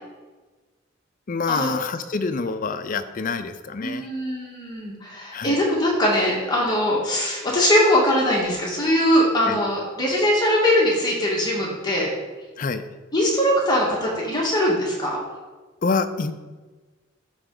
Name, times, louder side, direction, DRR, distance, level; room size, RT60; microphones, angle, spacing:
voice 1, 1.3-4.1 5.3-5.6 9.5-9.6 12.6-12.8 15.8-16.3, left 4 dB, 40° left, 10 dB, 0.5 m, -26 dB
voice 2, 3.8-12.1 13.1-15.2, equal, 20° left, -3 dB, 1.7 m, -21 dB
13.0 x 4.4 x 3.8 m, 1.3 s
head